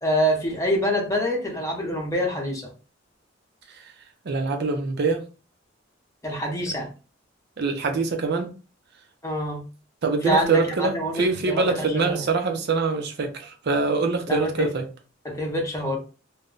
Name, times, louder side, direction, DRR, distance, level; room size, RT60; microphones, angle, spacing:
voice 1, 0.0-2.7 6.2-6.9 9.2-9.6 10.2-12.2 14.3-14.7 15.2-16.0, equal, 15° left, 0.8 m, -26 dB
voice 2, 4.3-5.2 7.6-8.5 10.0-14.9, right 4 dB, 55° right, 0.5 m, -24 dB
2.1 x 2.0 x 3.7 m
head